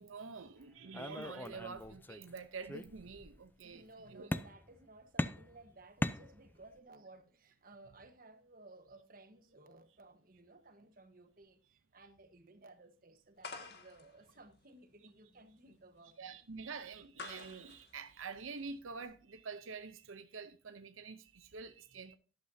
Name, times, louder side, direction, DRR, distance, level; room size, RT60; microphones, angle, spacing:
voice 1, 0.0-4.3 16.2-22.1, right 5 dB, 85° right, 0.7 m, -47 dB
sound 1, 0.9-2.3 2.6-3.4 4.3-4.8 5.2-6.8, left 1 dB, 10° left, 0.4 m, -39 dB
voice 2, 3.6-16.4, right 2 dB, 45° right, 1.2 m, -58 dB
sound 2, 13.4-19.0, left 4 dB, 50° left, 1.9 m, -52 dB
13.0 x 11.5 x 2.7 m
head